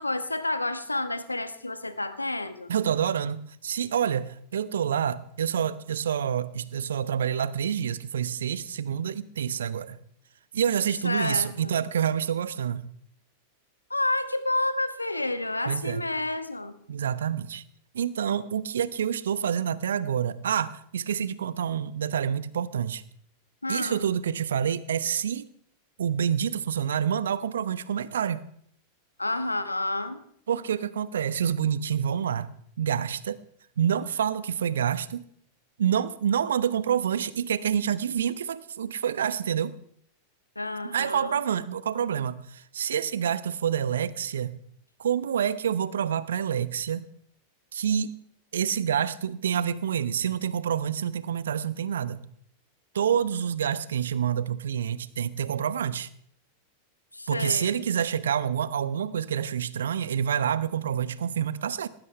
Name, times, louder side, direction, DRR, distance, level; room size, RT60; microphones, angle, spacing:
voice 1, 0.0-2.7 11.0-11.8 13.9-16.7 23.6-24.0 29.2-30.2 40.5-41.4 57.1-57.8, left 2 dB, 85° left, 12 dB, 1.3 m, -30 dB
voice 2, 2.7-10.0 10.5-12.9 15.6-16.0 16.9-17.6 17.9-23.0 23.7-25.5 26.0-28.4 30.5-32.5 32.8-33.4 33.8-35.2 35.8-39.8 40.9-44.5 45.0-47.1 47.7-48.2 48.5-52.2 52.9-56.1 57.3-61.9, right 8 dB, 65° right, 17 dB, 0.9 m, -27 dB
19.0 x 18.0 x 3.3 m, 0.65 s
figure-of-eight pair, 90°, 0 cm